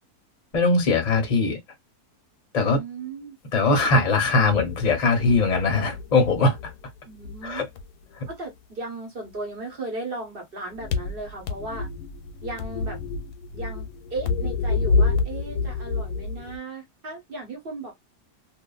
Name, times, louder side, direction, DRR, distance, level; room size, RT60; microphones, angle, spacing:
voice 1, 0.5-1.6 2.5-2.8 3.5-6.7 7.4-7.6 8.1-8.2, left 3 dB, 30° left, 0.8 m, -21 dB
voice 2, 2.7-3.4 7.0-7.6 8.3-11.9 12.4-13.0 13.5-17.9, right 2 dB, 40° right, 1.2 m, -36 dB
sound 1, 4.4-6.9 7.2-8.3 10.7-16.6, left 4 dB, 90° left, 1.2 m, -28 dB
2.7 x 2.6 x 2.3 m
omnidirectional pair, 1.6 m